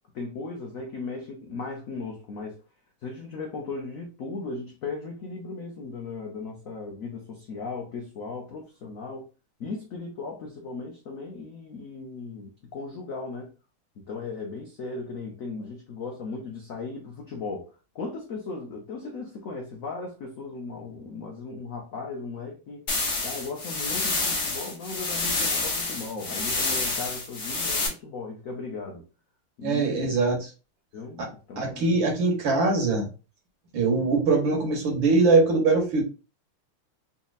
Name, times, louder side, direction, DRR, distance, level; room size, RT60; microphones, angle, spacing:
voice 1, 0.1-2.6 3.0-9.3 9.6-13.5 14.1-22.8 23.2-29.0 29.6-30.1 30.9-31.2 31.5-32.0, left 4 dB, 75° left, 0.7 m, -37 dB
sound 1, 22.9-27.9, left 3 dB, 45° left, 1.1 m, -28 dB
voice 2, 29.6-30.5 31.2-31.3 31.6-33.1 33.7-36.0, right 3 dB, 65° right, 1.8 m, -22 dB
4.1 x 2.7 x 2.4 m
omnidirectional pair, 2.4 m